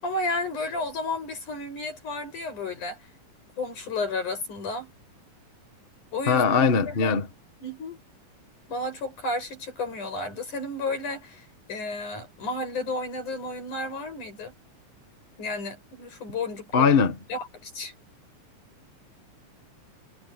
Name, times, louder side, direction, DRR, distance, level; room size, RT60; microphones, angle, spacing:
voice 1, 0.0-3.0 3.6-4.9 6.1-7.2 7.6-8.0 8.7-14.5 15.4-16.9 17.3-17.9, left 2 dB, 75° left, 9.6 m, -32 dB
voice 2, 6.3-7.3 16.7-17.2, left 6 dB, 35° left, 0.9 m, -20 dB
omnidirectional pair, 3.6 m